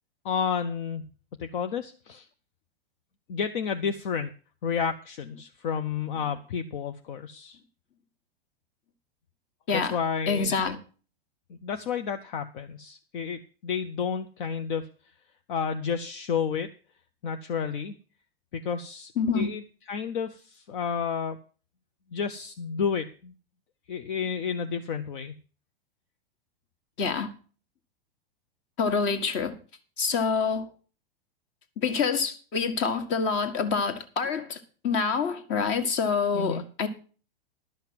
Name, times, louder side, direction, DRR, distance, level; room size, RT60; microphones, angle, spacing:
voice 1, 0.2-1.0 1.4-2.3 3.3-4.3 4.6-7.6 9.7-10.5 11.5-14.9 15.5-16.7 17.2-17.9 18.5-21.4 22.1-23.3 23.9-25.3 36.3-36.6, left 6 dB, 60° left, 0.9 m, -31 dB
voice 2, 10.3-10.8 19.2-19.5 27.0-27.3 28.8-29.5 30.0-30.7 31.8-36.9, left 5 dB, 40° left, 1.7 m, -27 dB
12.0 x 5.7 x 7.6 m
hypercardioid pair, 100°, 29 cm